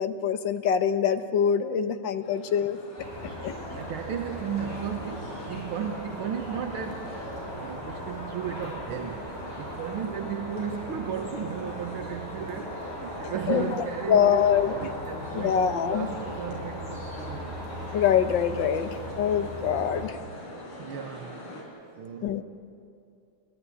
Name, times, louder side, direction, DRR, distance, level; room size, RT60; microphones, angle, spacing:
voice 1, 0.0-2.8 3.4-3.5 13.5-13.6 14.1-14.7 15.4-16.1 17.9-18.9 19.2-20.1 22.2-22.4, left 8 dB, 60° left, 9 dB, 1.6 m, -24 dB
sound 1, 2.2-21.6, equal, 85° left, 4.9 m, -42 dB
sound 2, 3.0-20.1, equal, 10° left, 6.2 m, -39 dB
voice 2, 3.1-7.3 7.5-17.6 20.8-21.5 22.0-22.4, right 8 dB, 75° right, 3 dB, 2.0 m, -35 dB
28.0 x 14.0 x 9.8 m, 2.5 s
omnidirectional pair, 2.4 m